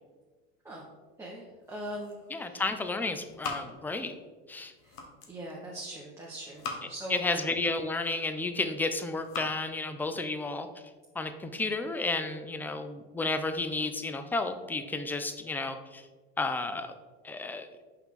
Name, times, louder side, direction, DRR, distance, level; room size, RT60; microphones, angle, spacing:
voice 1, 1.2-2.6 4.8-5.0 5.3-7.4, right 1 dB, 10° right, -4 dB, 1.1 m, -41 dB
sound 1, 1.5-2.5 2.8-4.2 4.6-5.4 6.3-7.2 7.7-8.5 9.0-9.6, left 4 dB, 70° left, 1.3 m, -42 dB
voice 2, 2.3-4.1 4.5-4.7 7.1-10.7 11.2-16.0 16.4-16.9 17.2-17.7, left 3 dB, 5° left, 9 dB, 0.4 m, -32 dB
5.8 x 5.6 x 3.7 m, 1.3 s
supercardioid pair, 120°, 29 cm